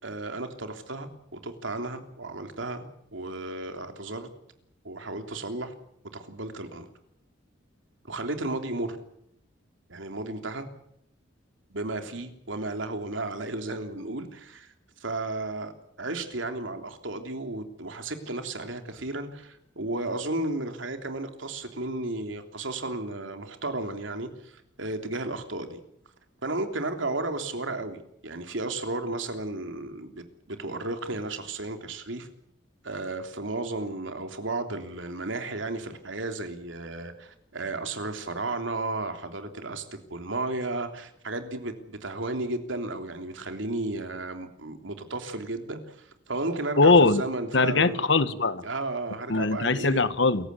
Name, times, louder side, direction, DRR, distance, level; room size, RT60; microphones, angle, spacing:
voice 1, 0.0-4.3 4.8-5.7 6.1-6.9 8.0-9.0 9.9-10.7 11.7-14.7 15.0-15.7 16.0-25.8 26.4-32.3 32.8-39.8 40.1-48.1 48.6-50.0, right 2 dB, 80° right, 3.3 m, -33 dB
voice 2, 46.8-47.2 47.5-48.6 49.3-50.5, left 3 dB, 65° left, 1.4 m, -21 dB
28.0 x 15.5 x 8.4 m
head